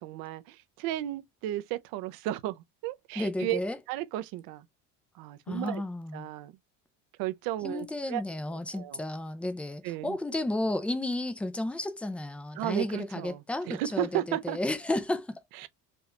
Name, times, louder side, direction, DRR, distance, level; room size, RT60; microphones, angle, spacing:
voice 1, 0.0-3.6 3.9-4.6 5.2-5.8 6.1-6.5 7.2-8.2 8.7-9.0 9.8-10.2 12.6-14.6 15.5-15.7, right 14 dB, 80° right, 0.8 m, -34 dB
voice 2, 3.2-3.8 5.5-6.3 7.6-15.4, left 1 dB, 5° left, 0.4 m, -32 dB
4.6 x 3.2 x 2.5 m
cardioid pair, 160°, 34 cm